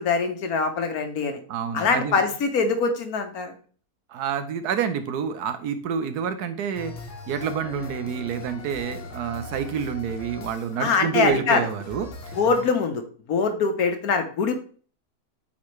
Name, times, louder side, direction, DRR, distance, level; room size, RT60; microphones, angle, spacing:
voice 1, 0.0-1.4 1.7-3.5 10.8-11.7 12.4-13.0 13.3-14.5, left 5 dB, 75° left, 6 dB, 1.4 m, -23 dB
voice 2, 1.5-2.2 4.1-6.9 7.3-12.3, right 7 dB, 85° right, 10 dB, 1.3 m, -28 dB
sound 1, 6.7-12.6, left 2 dB, 55° left, 1.3 m, -40 dB
8.4 x 4.2 x 3.2 m, 0.42 s
omnidirectional pair, 1.6 m